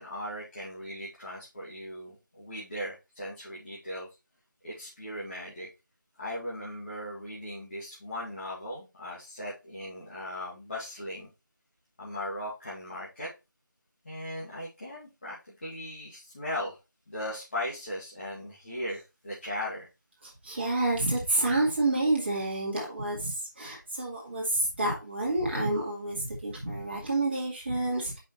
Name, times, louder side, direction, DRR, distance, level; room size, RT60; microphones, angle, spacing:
voice 1, 0.0-4.1 4.6-5.7 6.2-11.3 12.0-13.3 14.0-16.8 17.1-19.9, left 1 dB, 35° left, 2.3 m, -38 dB
voice 2, 20.2-28.2, right 2 dB, 35° right, 1.9 m, -29 dB
5.5 x 5.0 x 4.3 m
figure-of-eight pair, 170°, 11 cm